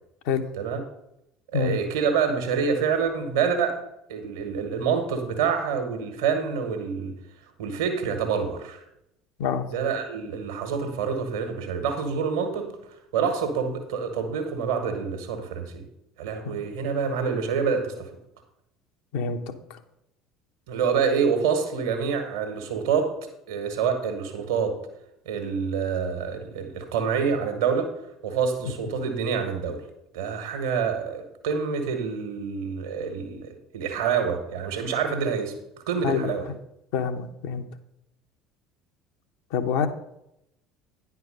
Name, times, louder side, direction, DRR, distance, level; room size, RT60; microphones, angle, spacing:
voice 1, 1.5-3.8 4.1-7.1 7.6-8.9 9.7-15.8 16.2-18.1 20.7-23.1 23.5-24.8 25.2-27.9 28.2-29.8 30.1-33.5 33.7-35.5 35.9-36.5, right 6 dB, 70° right, 6 dB, 1.3 m, -27 dB
voice 2, 36.9-37.6 39.5-39.9, left 6 dB, 65° left, 6 dB, 0.9 m, -26 dB
9.8 x 4.6 x 6.5 m, 0.81 s
figure-of-eight pair, 65°, 2 cm